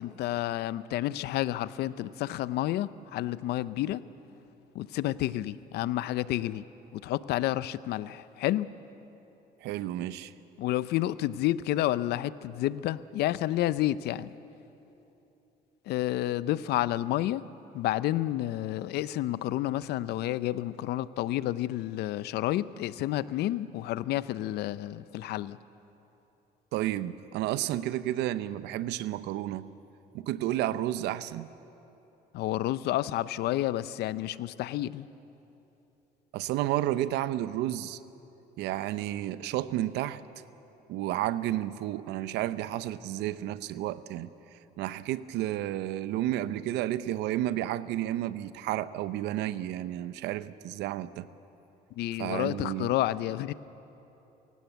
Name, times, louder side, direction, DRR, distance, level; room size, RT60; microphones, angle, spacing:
voice 1, 0.0-4.0 4.7-6.6 6.9-8.7 10.6-14.3 15.9-17.4 17.7-25.6 32.3-35.1 52.0-53.5, left 14 dB, 75° left, 17 dB, 0.6 m, -30 dB
voice 2, 9.6-10.3 26.7-29.7 30.1-31.5 36.3-38.0 38.6-40.2 40.9-44.3 44.8-51.3 52.2-52.9, right 13 dB, 85° right, 15 dB, 0.6 m, -31 dB
24.5 x 16.0 x 8.1 m, 3.0 s
cardioid pair, 110°, 17 cm